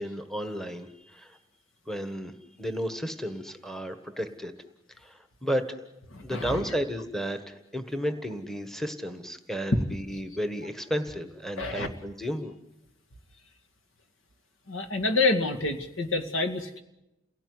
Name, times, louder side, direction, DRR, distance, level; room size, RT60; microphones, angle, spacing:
voice 1, 0.0-1.4 1.9-4.5 5.0-5.9 6.2-12.5, equal, ahead, 8 dB, 1.4 m, -33 dB
voice 2, 6.1-6.6 11.6-11.9 14.7-16.8, left 3 dB, 70° left, 7 dB, 2.3 m, -28 dB
28.5 x 18.0 x 9.6 m, 0.94 s
head